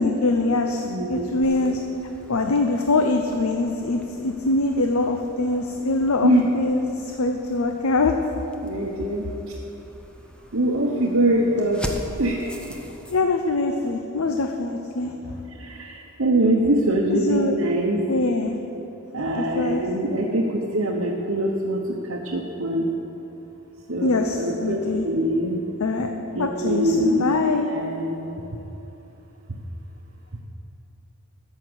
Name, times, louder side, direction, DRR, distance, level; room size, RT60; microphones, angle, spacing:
voice 1, 0.0-1.8 2.3-8.2 13.1-15.4 17.1-17.6 18.1-18.6 19.2-19.9 24.0-25.0 25.8-26.1 26.4-27.7, left 3 dB, 90° left, 4 dB, 0.7 m, -23 dB
voice 2, 0.8-1.2 1.6-1.8 6.2-6.5 8.6-9.3 10.5-11.9 12.2-12.7 15.6-18.0 19.1-21.8 22.1-22.9 23.9-24.8 25.0-25.6 26.3-27.2 27.7-28.2, right 1 dB, 65° right, -2 dB, 1.0 m, -23 dB
sound 1, 1.4-13.2, equal, 5° left, 0.7 m, -42 dB
13.5 x 6.4 x 8.0 m, 3.0 s
head